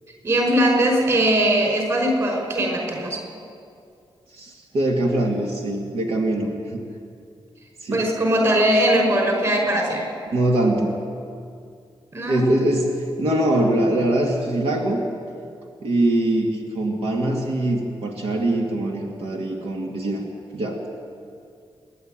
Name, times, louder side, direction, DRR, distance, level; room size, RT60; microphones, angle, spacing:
voice 1, 0.2-3.2 7.9-10.1 12.1-12.4, right 1 dB, 35° right, 1 dB, 5.4 m, -20 dB
voice 2, 4.3-6.8 7.8-8.1 10.3-11.0 12.3-12.9 13.2-15.1 15.8-20.2 20.5-20.8, right 1 dB, 90° right, 0 dB, 2.5 m, -22 dB
28.0 x 11.0 x 9.2 m, 2.4 s
wide cardioid pair, 155°, 10 cm